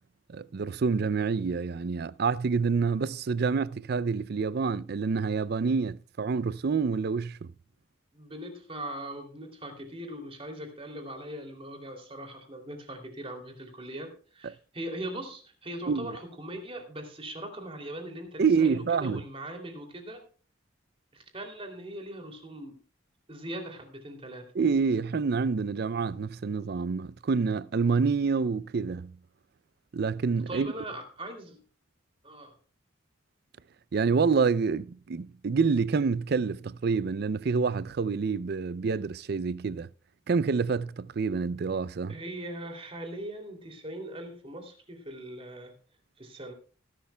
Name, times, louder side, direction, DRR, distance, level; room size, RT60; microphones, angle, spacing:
voice 1, 0.3-7.5 15.9-16.1 18.4-19.2 24.5-29.1 29.9-30.7 33.9-39.9 40.3-42.2, right 5 dB, 55° right, 0.4 m, -27 dB
voice 2, 8.1-20.2 21.1-22.8 23.3-24.5 30.5-31.6 32.2-32.6 42.1-45.7 46.2-46.5, right 1 dB, 30° right, 2.9 m, -40 dB
19.5 x 11.5 x 2.3 m
head